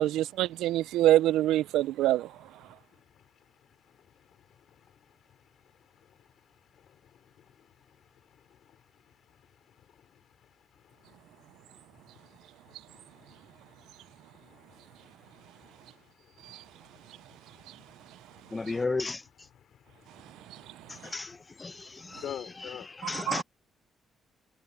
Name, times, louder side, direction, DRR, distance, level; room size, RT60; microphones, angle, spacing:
voice 1, 0.0-2.3 23.3-23.4, right 14 dB, 90° right, 0.4 m, -24 dB
voice 2, 1.8-18.9 19.6-21.1 21.7-23.1, left 10 dB, 70° left, 4.5 m, -53 dB
voice 3, 18.5-19.5 20.9-23.4, left 3 dB, 25° left, 0.7 m, -35 dB
cardioid pair, 90°, 0 cm